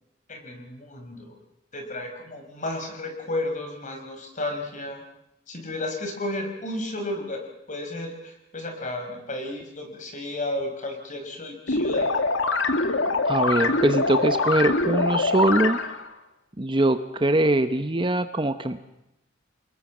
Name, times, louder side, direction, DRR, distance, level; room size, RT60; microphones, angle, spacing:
voice 1, 0.3-1.4 1.7-5.0 5.5-12.1, left 1 dB, 40° left, 4 dB, 5.1 m, -33 dB
sound 1, 11.7-16.1, left 3 dB, 65° left, 2.0 m, -24 dB
voice 2, 13.2-15.8 16.6-18.8, right 2 dB, 25° right, 9 dB, 1.0 m, -22 dB
29.0 x 19.5 x 7.5 m, 0.88 s
head